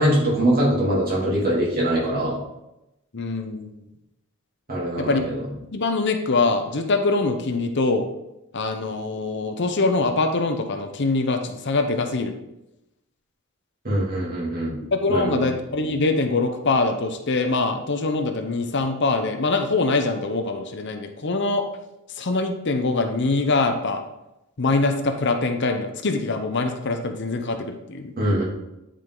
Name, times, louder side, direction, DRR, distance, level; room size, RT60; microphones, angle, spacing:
voice 1, 0.0-2.4 4.7-5.2 13.8-14.7 15.1-15.4 28.2-28.4, right 1 dB, 40° right, -5 dB, 2.9 m, -22 dB
voice 2, 3.1-3.8 5.0-5.2 5.7-8.1 8.5-12.3 14.9-21.6 22.1-24.0 24.6-28.1, left 3 dB, 50° left, 6 dB, 0.7 m, -23 dB
9.7 x 5.0 x 3.8 m, 0.91 s
head